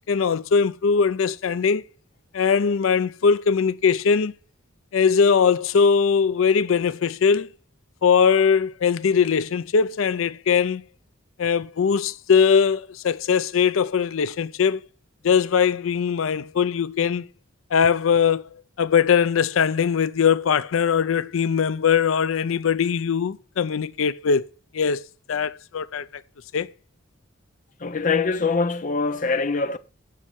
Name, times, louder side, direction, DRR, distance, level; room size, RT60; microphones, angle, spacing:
voice 1, 0.1-1.8 2.3-4.3 4.9-7.5 8.0-10.8 11.4-14.8 15.2-17.2 17.7-18.5 18.8-24.5 24.7-25.0 25.3-26.2 26.5-26.7, left 6 dB, 85° left, 0.5 m, -21 dB
voice 2, 27.8-29.8, left 4 dB, 40° left, 0.6 m, -23 dB
15.0 x 5.5 x 4.6 m
head